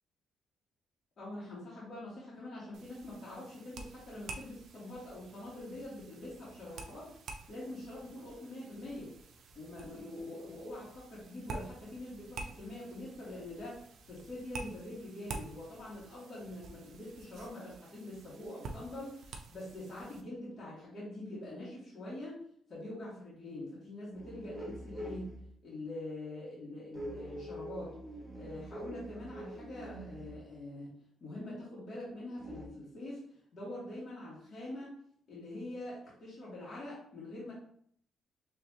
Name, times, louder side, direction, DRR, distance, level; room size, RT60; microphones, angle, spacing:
voice 1, 1.2-7.1 7.5-9.1 9.5-13.8 14.1-22.4 22.7-25.3 25.6-27.9 28.3-35.0 35.3-37.5, left 1 dB, 50° left, -7 dB, 1.8 m, -44 dB
sound 1, 2.7-20.2, right 3 dB, 70° right, 0.6 m, -49 dB
sound 2, 24.1-25.5 26.9-30.5 32.4-32.7, right 1 dB, 5° right, 1.2 m, -45 dB
4.7 x 3.1 x 2.8 m, 0.64 s
cardioid pair, 90°, 0 cm